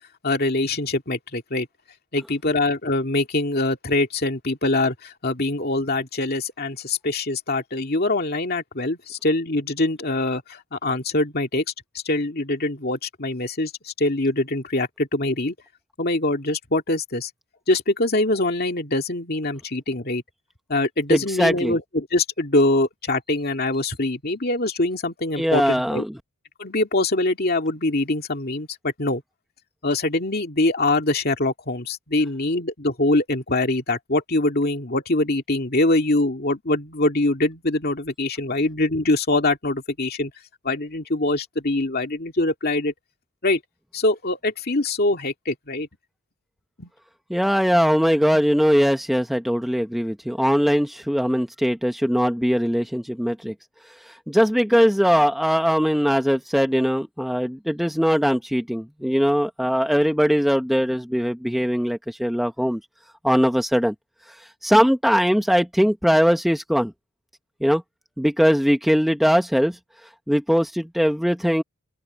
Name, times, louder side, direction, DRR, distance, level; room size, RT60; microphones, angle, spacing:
voice 1, 0.2-1.7 2.1-11.6 12.1-15.5 16.0-17.3 17.7-20.2 20.7-26.0 26.6-29.2 29.8-40.3 40.6-42.9 43.4-43.6 43.9-45.9 46.8-46.9, left 2 dB, 45° left, 2.4 m, -23 dB
voice 2, 21.1-21.7 25.4-26.1 47.3-53.5 54.0-62.8 63.2-63.9 64.6-66.9 67.6-67.8 68.2-69.8 70.3-71.6, equal, ahead, 0.9 m, -20 dB
open air
head